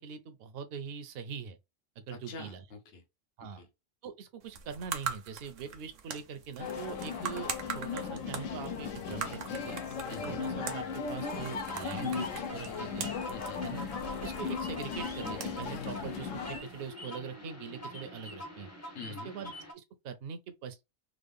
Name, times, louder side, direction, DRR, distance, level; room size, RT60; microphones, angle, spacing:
voice 1, 0.0-1.6 2.0-2.6 3.4-3.6 4.0-9.8 10.1-13.1 13.6-13.8 14.2-18.7 19.2-20.8, right 7 dB, 60° right, 0.7 m, -42 dB
voice 2, 2.1-3.0 3.4-3.7 10.1-10.4 13.3-13.6 18.9-19.3, left 4 dB, 55° left, 1.0 m, -46 dB
sound 1, 4.4-16.9, right 7 dB, 75° right, 1.1 m, -43 dB
sound 2, 6.6-16.6, left 6 dB, 80° left, 1.1 m, -37 dB
sound 3, 11.6-19.7, left 1 dB, 15° left, 0.6 m, -45 dB
3.6 x 2.1 x 3.4 m
omnidirectional pair, 1.3 m